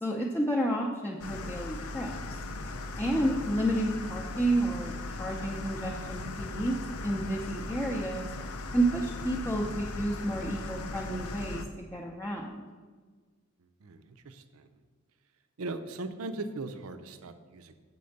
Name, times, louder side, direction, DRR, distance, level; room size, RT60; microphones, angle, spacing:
voice 1, 0.0-2.2 3.0-8.3 8.7-12.6, right 1 dB, 10° left, -2 dB, 0.5 m, -31 dB
sound 1, 1.2-11.6, left 2 dB, 80° left, 0.6 m, -38 dB
voice 2, 13.8-14.7 15.6-17.7, right 2 dB, 75° right, 9 dB, 0.6 m, -39 dB
6.9 x 4.3 x 6.4 m, 1.5 s
head